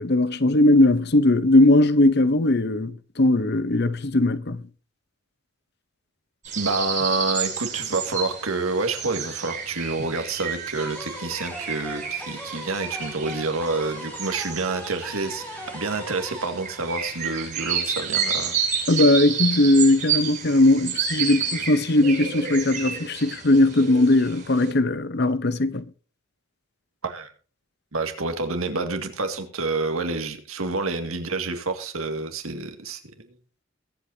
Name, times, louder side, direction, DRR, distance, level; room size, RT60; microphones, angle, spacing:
voice 1, 0.0-4.6 18.9-25.9, left 2 dB, 50° left, 0.9 m, -19 dB
sound 1, 6.4-24.7, right 6 dB, 40° right, 7.8 m, -31 dB
voice 2, 6.6-15.4 15.7-18.6 27.0-27.3 27.9-33.0 33.3-33.4, right 3 dB, 85° right, 2.2 m, -28 dB
sound 2, 10.8-17.7, equal, 5° left, 4.4 m, -39 dB
22.5 x 8.3 x 2.8 m
head